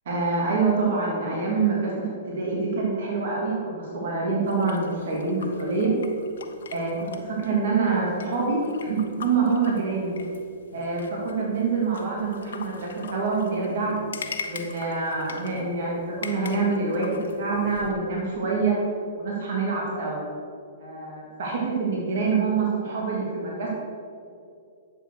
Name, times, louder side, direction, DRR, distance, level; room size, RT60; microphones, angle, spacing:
voice 1, 0.0-5.9 6.7-10.1 10.7-14.0 14.4-18.8 19.1-20.2 20.8-23.7, right 4 dB, 65° right, -3 dB, 3.0 m, -26 dB
sound 1, 4.4-17.9, left 5 dB, 75° left, 1.2 m, -42 dB
11.0 x 7.6 x 6.6 m, 2.5 s
hypercardioid pair, 120°, 0 cm